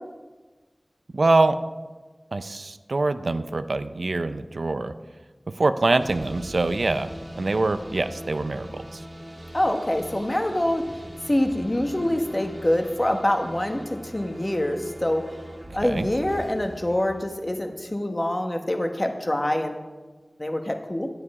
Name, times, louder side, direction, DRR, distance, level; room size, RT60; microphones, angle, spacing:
voice 1, 1.1-1.6 2.3-4.9 5.6-7.1 7.4-9.0 15.8-16.1, right 2 dB, 85° right, 10 dB, 0.5 m, -24 dB
sound 1, 6.0-17.9, equal, 30° right, 1.6 m, -41 dB
voice 2, 9.5-10.8 11.3-15.2 15.7-19.9 20.4-21.1, left 1 dB, 30° left, 4 dB, 1.2 m, -25 dB
9.8 x 9.6 x 4.8 m, 1.3 s
wide cardioid pair, 55°, 0 cm